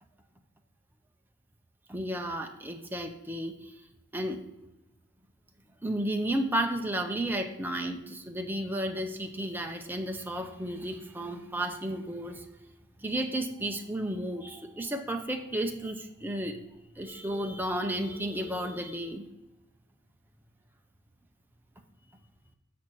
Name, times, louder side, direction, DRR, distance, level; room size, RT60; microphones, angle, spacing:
voice 1, 1.9-3.8 4.1-4.4 5.8-12.5 13.0-16.6 17.0-19.3, right 1 dB, 10° right, 4 dB, 0.5 m, -33 dB
6.4 x 4.3 x 6.1 m, 0.95 s
head